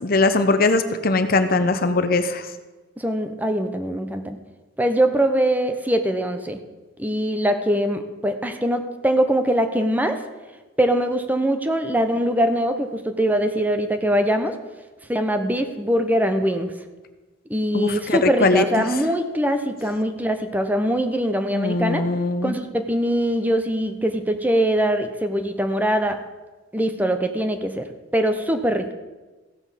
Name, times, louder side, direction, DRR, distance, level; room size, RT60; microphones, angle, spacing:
voice 1, 0.0-2.4 17.7-18.6 21.5-22.5, left 3 dB, 55° left, 9 dB, 0.9 m, -20 dB
voice 2, 3.0-4.4 4.8-6.6 7.0-10.2 10.8-14.5 15.1-16.7 17.5-22.0 22.4-26.2 26.7-27.8 28.1-28.9, equal, 10° right, 7 dB, 0.9 m, -22 dB
15.5 x 6.2 x 7.3 m, 1.2 s
head